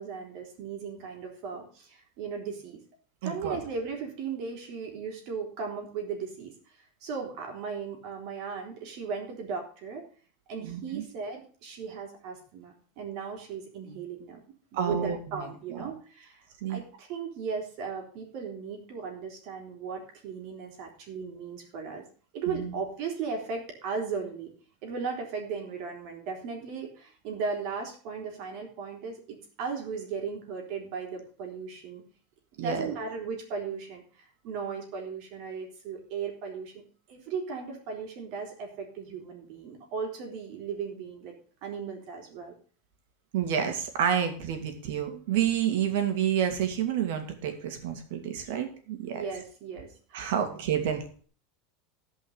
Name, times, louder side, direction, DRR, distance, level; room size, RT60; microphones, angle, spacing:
voice 1, 0.0-2.8 3.2-10.0 10.5-14.4 14.7-16.4 16.7-22.0 22.3-24.5 24.8-32.0 32.6-36.8 37.1-41.3 41.6-42.5 49.1-50.2, right 5 dB, 45° right, 2 dB, 3.5 m, -37 dB
voice 2, 3.2-3.6 10.6-11.0 14.7-15.9 16.6-16.8 22.5-22.7 32.6-32.9 43.3-49.2 50.1-51.0, right 9 dB, 65° right, 5 dB, 2.5 m, -29 dB
14.5 x 5.5 x 6.5 m, 0.42 s
supercardioid pair, 175°, 0 cm